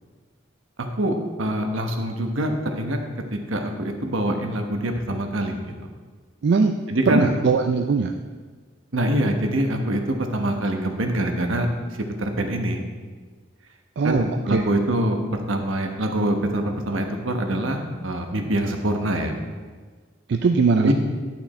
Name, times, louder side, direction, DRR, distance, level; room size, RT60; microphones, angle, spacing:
voice 1, 1.0-3.0 3.3-5.6 6.9-7.3 8.9-11.7 12.2-12.8 14.0-15.2 15.5-19.4 20.8-20.9, right 1 dB, 75° right, 4 dB, 1.1 m, -24 dB
voice 2, 6.4-6.8 7.1-8.1 14.0-14.7 20.3-20.9, right 4 dB, 55° right, 5 dB, 0.4 m, -20 dB
11.0 x 5.9 x 4.2 m, 1.5 s
head